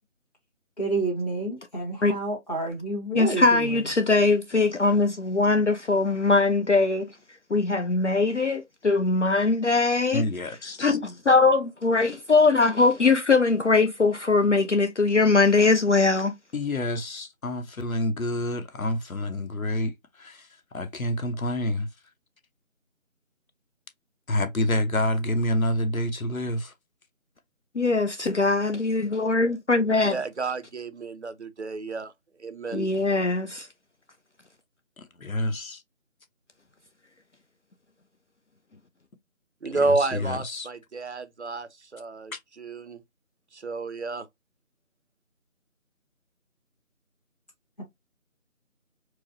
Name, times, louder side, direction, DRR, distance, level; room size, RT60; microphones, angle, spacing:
voice 1, 0.8-3.8, right 2 dB, 30° left, 1.5 m, -29 dB
voice 2, 3.1-7.1 7.5-10.2 10.8-16.3 27.8-30.1 32.7-33.7, left 3 dB, 60° left, 0.5 m, -21 dB
voice 3, 10.1-11.0 16.5-21.9 24.3-26.7 35.0-35.8 39.7-40.7 42.3-42.4, left 1 dB, 80° left, 0.9 m, -28 dB
voice 4, 30.0-32.1 32.4-32.9 39.6-43.0 43.5-44.3, right 3 dB, 55° right, 0.5 m, -30 dB
4.6 x 2.0 x 2.6 m
figure-of-eight pair, 165°, 41 cm